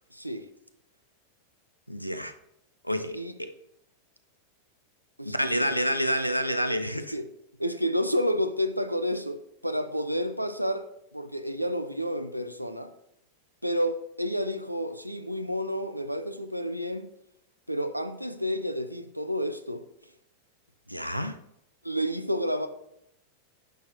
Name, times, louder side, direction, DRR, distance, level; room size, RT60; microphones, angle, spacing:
voice 1, 0.1-0.4 3.1-3.3 5.2-5.8 6.9-7.3 7.6-10.9 11.1-12.9 13.6-17.1 17.7-19.8 21.8-22.7, equal, 90° right, 9 dB, 0.6 m, -30 dB
voice 2, 1.9-2.3 2.8-3.5 5.3-7.1 20.9-21.4, equal, 90° left, 9 dB, 0.6 m, -28 dB
10.5 x 6.0 x 2.6 m, 0.77 s
figure-of-eight pair, 90°, 0 cm